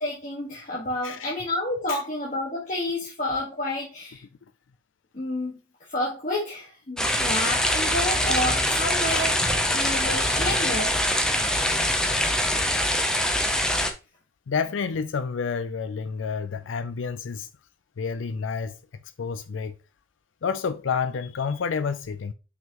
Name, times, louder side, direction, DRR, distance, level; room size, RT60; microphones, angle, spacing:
voice 1, 0.0-4.2 5.1-5.6 5.9-10.9, left 1 dB, 45° left, 1.7 m, -30 dB
sound 1, 7.0-13.9, left 1 dB, 5° left, 0.6 m, -23 dB
voice 2, 14.5-17.5 18.0-18.8 19.2-19.8 20.4-22.3, left 5 dB, 90° left, 0.4 m, -29 dB
6.0 x 5.5 x 3.0 m
head